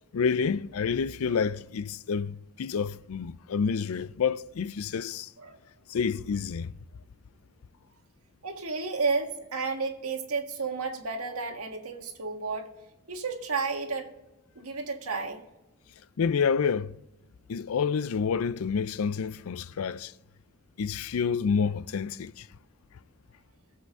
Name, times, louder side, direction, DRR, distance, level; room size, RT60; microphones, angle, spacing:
voice 1, 0.1-5.3 5.9-6.7 16.2-17.0 17.5-20.1 20.8-22.5, left 6 dB, 70° left, 0.4 m, -28 dB
voice 2, 8.4-12.7 13.1-14.1 14.6-15.4, right 4 dB, 80° right, 1.7 m, -32 dB
22.5 x 7.7 x 3.6 m
head